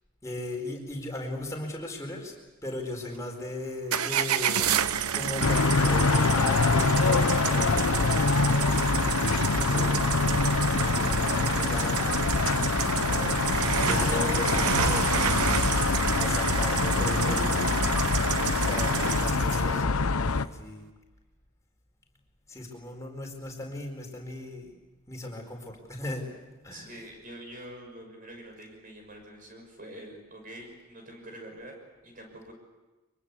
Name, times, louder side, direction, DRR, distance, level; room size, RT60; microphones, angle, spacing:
voice 1, 0.2-9.3 9.6-12.2 13.1-13.3 13.8-20.9 22.5-24.7 25.1-26.9, left 1 dB, 15° left, 1 dB, 4.5 m, -38 dB
sound 1, 3.9-19.8, right 8 dB, 85° right, 1.0 m, -30 dB
sound 2, 5.4-20.5, left 4 dB, 80° left, 0.9 m, -25 dB
voice 2, 13.1-13.4 26.7-31.8 32.0-32.5, right 1 dB, 40° right, 3 dB, 6.2 m, -45 dB
24.0 x 23.0 x 8.4 m, 1.1 s
head